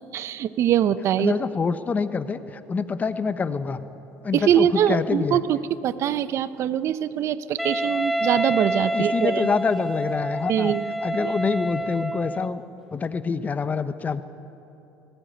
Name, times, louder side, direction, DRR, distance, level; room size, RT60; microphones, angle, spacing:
voice 1, 0.1-1.3 4.3-5.6 5.8-9.5 10.5-10.9 11.2-11.3, right 10 dB, 55° right, 14 dB, 0.8 m, -23 dB
voice 2, 1.2-3.8 4.2-5.4 8.9-10.7 11.0-12.6 12.9-14.2, left 5 dB, 25° left, 12 dB, 1.0 m, -26 dB
Wind instrument woodwind instrument, 7.6-12.6, right 1 dB, ahead, 0.5 m, -28 dB
19.5 x 18.5 x 9.4 m, 3.0 s
supercardioid pair, 105°, 6 cm